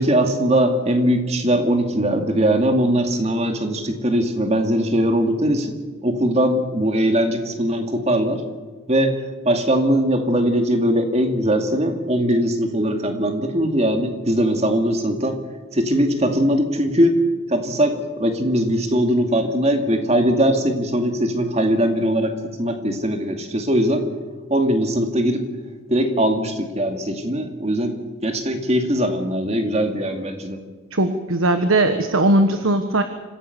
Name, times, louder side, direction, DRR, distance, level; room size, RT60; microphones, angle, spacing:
voice 1, 0.0-5.7 6.0-8.4 8.9-9.1 9.4-15.3 15.7-17.2 17.5-22.3 22.6-24.0 24.5-25.4 25.9-27.9 28.2-30.6, equal, 30° right, 5 dB, 2.3 m, -20 dB
voice 2, 30.9-33.0, right 1 dB, 80° right, 8 dB, 1.3 m, -18 dB
26.5 x 15.5 x 6.9 m, 1.4 s
head